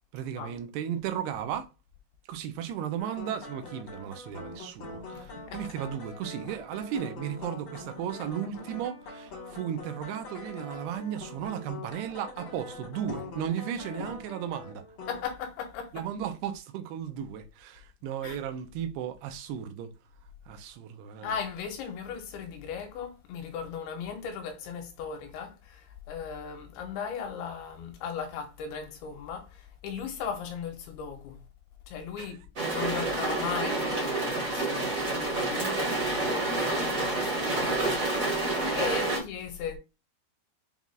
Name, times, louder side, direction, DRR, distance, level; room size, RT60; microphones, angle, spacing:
voice 1, 0.1-1.7 2.3-14.8 15.9-19.9 20.5-21.3 32.2-32.3, right 9 dB, 85° right, 2.6 m, -35 dB
sound 1, 3.0-15.3, left 2 dB, 60° left, 1.3 m, -43 dB
voice 2, 5.1-5.6 13.9-14.1 15.1-16.1 18.2-18.4 21.2-31.4 31.9-39.8, left 6 dB, 80° left, 2.6 m, -37 dB
sound 2, 32.6-39.2, right 2 dB, 60° right, 0.8 m, -28 dB
7.0 x 2.3 x 2.4 m
omnidirectional pair, 4.7 m